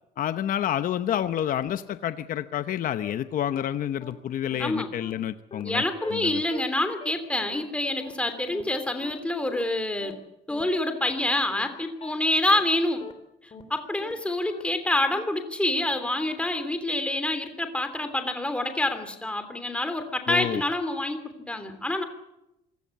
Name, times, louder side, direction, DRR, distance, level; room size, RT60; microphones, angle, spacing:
voice 1, 0.2-5.8 6.1-6.4 20.3-20.6, left 10 dB, 55° left, 11 dB, 0.9 m, -29 dB
sound 1, 2.6-2.7 3.0-3.1 3.5-3.6 4.0-4.1 4.5-4.6 5.0-5.1 5.5-5.6 6.0-6.1 6.5-6.6 7.0-7.1 7.5-7.6 8.0-8.1 8.5-8.6 9.0-9.1 9.5-9.6 10.0-10.1 10.5-10.6 11.0-11.1 11.5-11.6 12.0-12.1 12.5-12.6 13.0-13.1 13.5-13.6 14.0-14.1 14.5-14.6, left 5 dB, 35° left, 3.4 m, -42 dB
voice 2, 5.6-10.2 10.5-13.0 13.7-22.0, left 1 dB, 5° left, 8 dB, 3.1 m, -27 dB
26.0 x 17.0 x 8.5 m, 0.87 s
cardioid pair, 110°, 17 cm